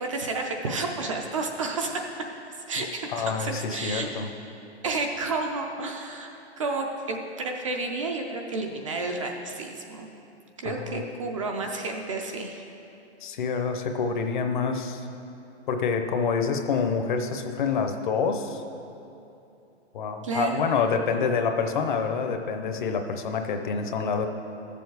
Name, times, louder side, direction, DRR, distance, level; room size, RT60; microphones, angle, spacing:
voice 1, 0.0-2.1 2.7-4.1 4.8-6.3 6.6-10.1 10.6-12.6 20.2-20.6, right 3 dB, 30° right, 2 dB, 0.5 m, -31 dB
voice 2, 3.1-4.3 10.6-11.1 13.2-15.1 15.7-18.6 19.9-24.3, left 5 dB, 45° left, 6 dB, 0.7 m, -27 dB
13.5 x 7.1 x 4.7 m, 2.8 s
hypercardioid pair, 170°, 34 cm